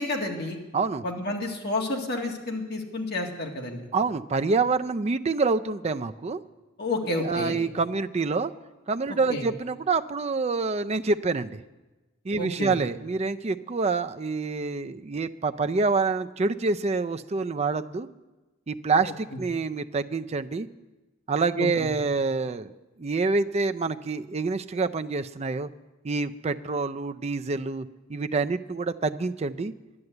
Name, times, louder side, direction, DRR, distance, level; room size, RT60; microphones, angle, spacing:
voice 1, 0.0-0.6 1.0-3.9 6.8-7.6 9.3-9.4 12.4-12.8 21.6-21.9, left 2 dB, 55° left, 1 dB, 2.0 m, -30 dB
voice 2, 0.7-1.0 3.9-6.4 7.2-8.5 8.9-11.6 12.2-18.1 18.7-20.7 21.3-22.7 23.0-25.7 26.0-29.7, right 4 dB, 35° right, 9 dB, 0.4 m, -27 dB
11.0 x 11.0 x 7.9 m, 1.1 s
head